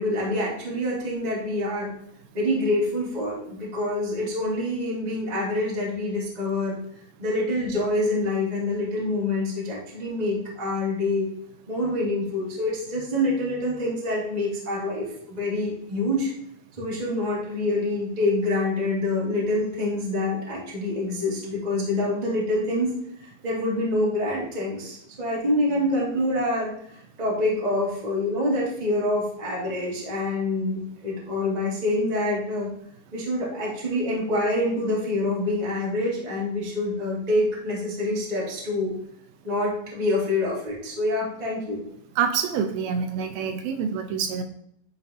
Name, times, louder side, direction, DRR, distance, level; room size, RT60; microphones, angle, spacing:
voice 1, 0.0-1.9 2.3-6.8 7.2-11.3 11.7-16.3 16.7-22.9 23.2-26.7 27.2-32.7 33.1-38.9 39.4-41.8, left 1 dB, 20° right, -6 dB, 1.1 m, -26 dB
voice 2, 42.2-44.4, right 7 dB, 80° right, 6 dB, 2.3 m, -26 dB
11.0 x 4.1 x 2.8 m, 0.72 s
omnidirectional pair, 4.4 m